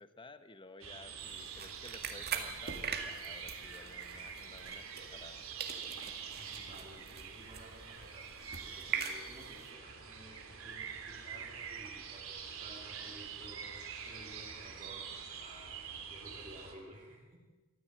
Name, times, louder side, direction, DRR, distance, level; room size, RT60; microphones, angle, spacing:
voice 1, 0.0-5.4 8.9-9.0, left 3 dB, 25° left, 11 dB, 1.0 m, -54 dB
sound 1, 0.8-16.7, right 6 dB, 85° right, 2.9 m, -46 dB
sound 2, 1.2-5.3 5.6-9.7, right 6 dB, 50° right, 2.1 m, -42 dB
voice 2, 6.3-17.4, right 1 dB, 30° right, -4 dB, 3.1 m, -54 dB
23.5 x 14.5 x 7.7 m, 1.3 s
head